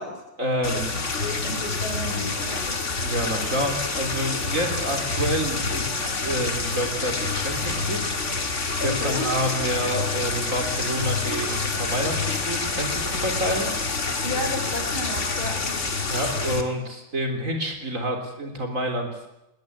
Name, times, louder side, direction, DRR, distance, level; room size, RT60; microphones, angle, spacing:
voice 1, 0.4-1.0 3.0-8.0 8.8-13.7 16.1-19.1, equal, 35° right, 4 dB, 4.0 m, -28 dB
sound 1, 0.6-16.6, left 3 dB, 35° left, 2.2 m, -27 dB
voice 2, 1.2-2.8 8.8-9.3 14.2-15.8, left 2 dB, 80° left, 5 dB, 5.2 m, -33 dB
20.5 x 19.0 x 9.6 m, 0.91 s
omnidirectional pair, 2.3 m